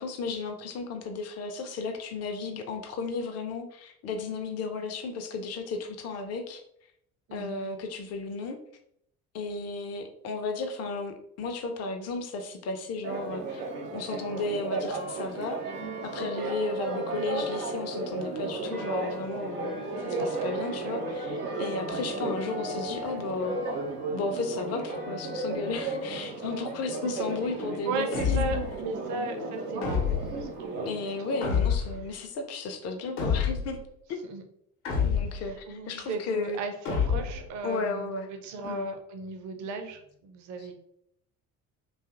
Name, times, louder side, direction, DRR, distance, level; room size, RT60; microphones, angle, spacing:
voice 1, 0.0-6.6 7.3-8.6 9.3-13.6 13.9-15.6 16.0-23.6 24.1-28.5 30.8-33.8 35.0-36.6 37.6-38.3 38.6-38.8, left 3 dB, 35° left, 6 dB, 0.5 m, -34 dB
voice 2, 7.3-7.7 27.9-30.9 31.3-31.7 34.2-34.4 35.7-40.8, right 3 dB, 40° right, 5 dB, 0.6 m, -36 dB
Church bell, 13.0-31.4, right 2 dB, 85° right, 0.6 m, -34 dB
sound 1, 28.1-28.8 29.8-30.4 31.4-32.1 33.2-33.8 34.8-35.5 36.8-37.5, left 6 dB, 60° left, 0.8 m, -28 dB
2.6 x 2.4 x 2.5 m, 0.72 s
figure-of-eight pair, 55°, 45 cm